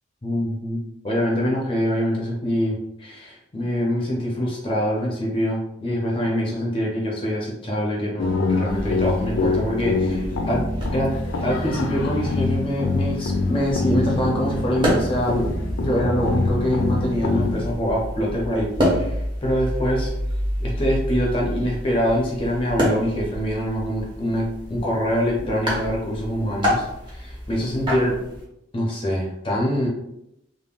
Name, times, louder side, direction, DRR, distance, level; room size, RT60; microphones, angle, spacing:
voice 1, 0.2-0.8 1.0-10.6 10.9-11.1 11.4-20.1 20.6-28.2 28.7-29.9, equal, 25° left, -3 dB, 0.5 m, -24 dB
sound 1, 8.2-17.7, left 3 dB, 85° left, 0.4 m, -25 dB
sound 2, 8.7-28.4, equal, 25° right, 0.7 m, -29 dB
3.5 x 2.0 x 2.3 m, 0.82 s
head